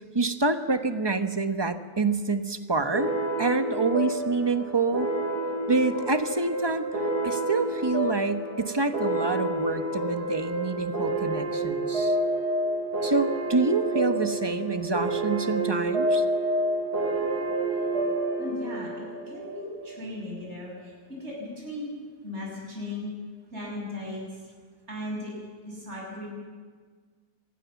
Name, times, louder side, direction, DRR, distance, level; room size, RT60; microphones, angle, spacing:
voice 1, 0.0-3.1 3.4-5.1 5.7-6.9 7.2-12.2 13.0-16.2, right 3 dB, 20° right, 8 dB, 0.9 m, -27 dB
sound 1, 2.9-20.0, right 1 dB, 85° right, 5.6 m, -29 dB
voice 2, 18.4-18.9 19.3-21.9 22.2-23.1 23.5-24.4 24.9-25.3 25.6-26.3, left 2 dB, 45° right, -2 dB, 7.4 m, -37 dB
25.0 x 19.5 x 7.2 m, 1.5 s
omnidirectional pair, 1.7 m